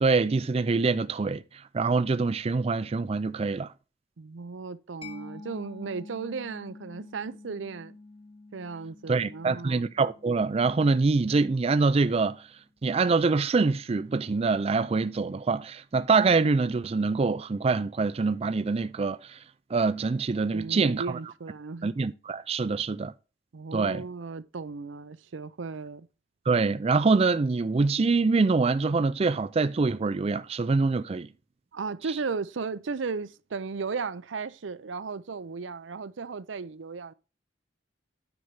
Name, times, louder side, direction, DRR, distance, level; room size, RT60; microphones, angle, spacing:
voice 1, 0.0-1.4 1.7-3.7 9.1-12.5 12.8-19.4 19.7-21.2 21.8-23.1 23.7-24.0 26.5-31.3, right 4 dB, 35° right, 0.4 m, -25 dB
voice 2, 4.2-7.9 8.5-9.9 20.5-22.0 23.5-26.1 31.7-37.1, right 4 dB, 85° right, 0.6 m, -35 dB
Mallet percussion, 5.0-12.4, left 3 dB, 30° left, 1.1 m, -48 dB
9.6 x 4.6 x 5.4 m
head